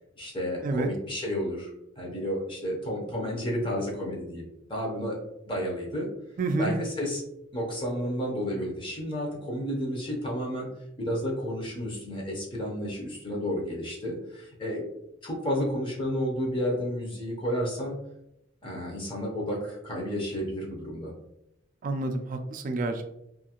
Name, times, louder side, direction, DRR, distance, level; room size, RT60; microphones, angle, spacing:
voice 1, 0.2-1.7 2.0-6.1 6.6-7.2 7.5-10.7 11.0-14.8 15.2-17.9 18.6-21.1, equal, 25° left, -2 dB, 0.6 m, -31 dB
voice 2, 6.4-6.7 21.8-23.1, right 2 dB, 40° right, 6 dB, 0.3 m, -28 dB
2.6 x 2.4 x 2.8 m, 0.82 s
head